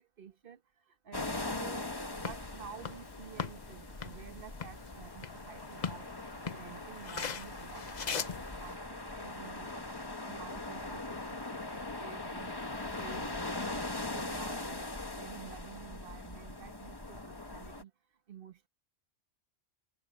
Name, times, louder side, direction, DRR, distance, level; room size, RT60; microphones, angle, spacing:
voice 1, 0.2-0.6 0.9-6.1 6.5-9.9 10.2-11.2 11.5-17.9 18.3-18.7, right 8 dB, 50° right, 1.3 m, -51 dB
sound 1, 1.1-17.8, left 2 dB, 20° left, 1.4 m, -41 dB
sound 2, 2.1-8.7, left 6 dB, 40° left, 0.8 m, -41 dB
omnidirectional pair, 1.3 m